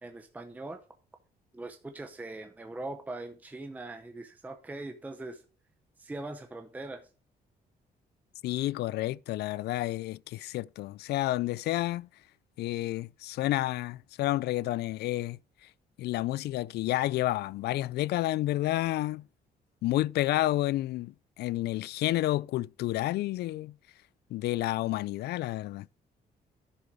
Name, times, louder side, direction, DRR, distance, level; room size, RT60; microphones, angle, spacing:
voice 1, 0.0-0.8 1.5-5.4 6.0-7.1, right 2 dB, 10° right, 0.8 m, -41 dB
voice 2, 8.4-12.1 12.6-15.4 16.0-19.2 19.8-23.7 24.3-25.9, left 16 dB, 80° left, 0.4 m, -30 dB
11.0 x 6.8 x 4.8 m
cardioid pair, 175°, 17 cm